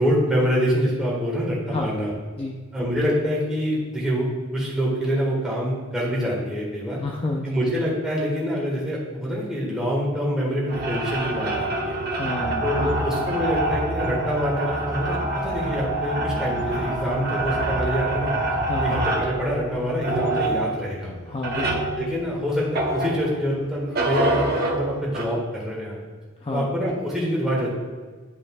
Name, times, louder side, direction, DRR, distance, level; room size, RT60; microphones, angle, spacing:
voice 1, 0.0-2.1 2.7-7.0 7.4-12.0 12.6-18.3 18.8-21.3 22.0-26.0 26.5-27.8, equal, 5° right, -5 dB, 1.7 m, -26 dB
voice 2, 7.0-7.6 12.1-12.9 18.6-19.0 21.3-21.9 26.4-26.7, left 2 dB, 25° left, -1 dB, 0.5 m, -30 dB
sound 1, 10.7-23.5 23.9-25.3, right 2 dB, 45° right, 0.9 m, -26 dB
10.5 x 5.2 x 2.4 m, 1.5 s
head